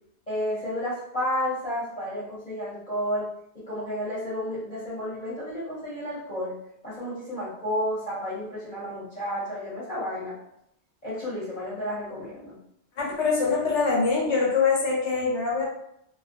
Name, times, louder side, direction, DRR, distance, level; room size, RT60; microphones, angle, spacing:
voice 1, 0.3-3.3 3.5-6.6 6.8-10.3 11.0-12.6, equal, 40° left, -11 dB, 0.9 m, -31 dB
voice 2, 13.0-15.6, left 4 dB, 85° left, -3 dB, 1.1 m, -24 dB
2.4 x 2.2 x 2.4 m, 0.77 s
omnidirectional pair, 1.2 m